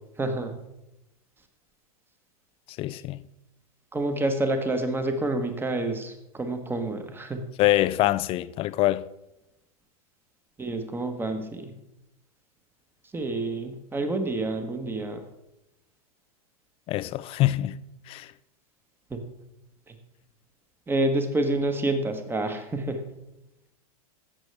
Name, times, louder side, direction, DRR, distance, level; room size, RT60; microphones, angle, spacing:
voice 1, 0.2-0.5 3.9-7.4 10.6-11.7 13.1-15.2 19.1-19.2 20.9-23.0, right 2 dB, 10° right, 1.2 m, -28 dB
voice 2, 2.8-3.2 7.6-9.1 16.9-17.8 18.1-18.3, left 15 dB, 30° left, 0.3 m, -24 dB
15.0 x 6.3 x 3.3 m
hypercardioid pair, 105°, 19 cm